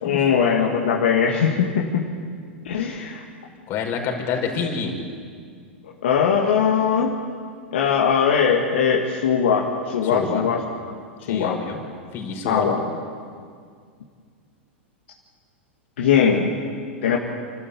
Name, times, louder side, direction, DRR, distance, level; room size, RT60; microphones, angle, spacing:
voice 1, 0.0-2.0 2.6-3.2 6.0-7.1 7.7-10.6 11.3-11.6 12.4-12.9 16.0-16.5 17.0-17.2, left 7 dB, 65° left, -1 dB, 2.3 m, -20 dB
voice 2, 3.7-4.9 10.0-10.5 11.3-11.8 12.1-12.7, left 6 dB, 40° left, 2 dB, 5.4 m, -27 dB
29.5 x 13.0 x 8.7 m, 2.1 s
figure-of-eight pair, 95°, 6 cm